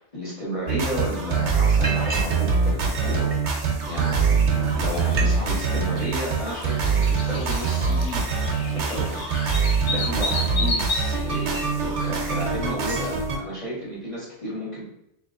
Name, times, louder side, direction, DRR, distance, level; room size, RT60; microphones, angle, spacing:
voice 1, 0.0-3.3 3.8-8.3 8.7-9.2 9.6-14.8, equal, 35° left, -8 dB, 1.5 m, -33 dB
Liquid, 0.7-0.8 1.1-1.3 1.8-2.4 2.7-3.6 4.3-4.4 4.7-4.8 5.0-5.3 5.6-6.0 6.5-10.3 10.8-11.8 12.2-12.4 12.6-13.1, right 3 dB, 40° right, 0.6 m, -37 dB
sound 1, 0.7-13.4, right 5 dB, 70° right, 1.0 m, -24 dB
sound 2, 4.9-12.2, left 3 dB, 50° left, 0.6 m, -33 dB
3.1 x 2.9 x 3.7 m, 0.79 s
omnidirectional pair, 1.2 m